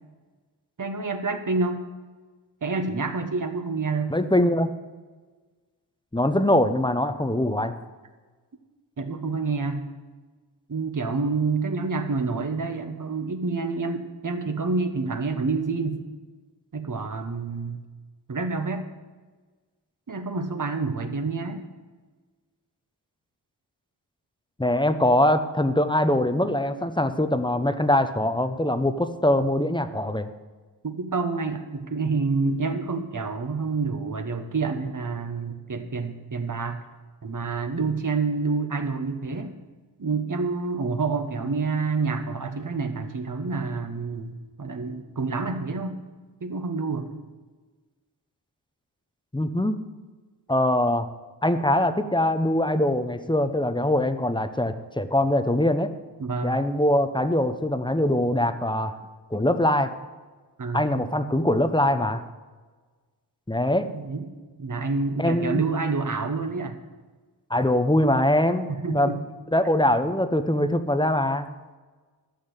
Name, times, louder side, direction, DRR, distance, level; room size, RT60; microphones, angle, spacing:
voice 1, 0.8-1.8 2.6-4.1 9.0-9.9 10.7-16.0 16.7-17.8 18.3-18.9 20.1-21.6 30.8-36.8 37.2-39.6 40.0-46.0 46.4-47.1 56.2-56.6 60.6-60.9 63.9-64.3 64.6-66.8 68.8-69.2, right 4 dB, 45° right, 7 dB, 1.5 m, -28 dB
voice 2, 4.1-4.7 6.1-7.8 24.6-30.3 49.3-49.8 50.5-51.1 51.4-55.9 56.4-58.9 59.3-59.9 60.7-62.2 63.5-63.9 65.2-65.6 67.5-69.2 69.5-71.5, left 1 dB, 10° left, 9 dB, 0.9 m, -23 dB
12.5 x 6.4 x 8.1 m, 1.4 s
cardioid pair, 65°, 42 cm